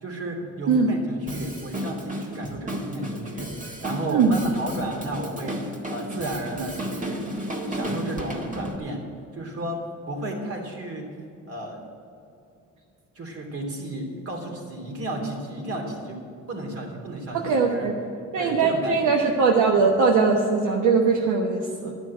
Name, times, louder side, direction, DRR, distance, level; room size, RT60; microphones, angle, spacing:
voice 1, 0.0-5.6 5.9-7.3 7.7-9.0 9.3-9.8 10.1-11.1 11.5-11.8 13.1-16.2 16.5-17.9 18.4-19.2, right 1 dB, 50° right, 1 dB, 3.1 m, -33 dB
Drum kit, 1.3-8.8, equal, 25° right, 1.8 m, -33 dB
voice 2, 17.3-17.9 18.3-21.9, right 4 dB, 80° right, 0 dB, 1.2 m, -21 dB
12.0 x 6.2 x 9.0 m, 2.5 s
cardioid pair, 90°, 30 cm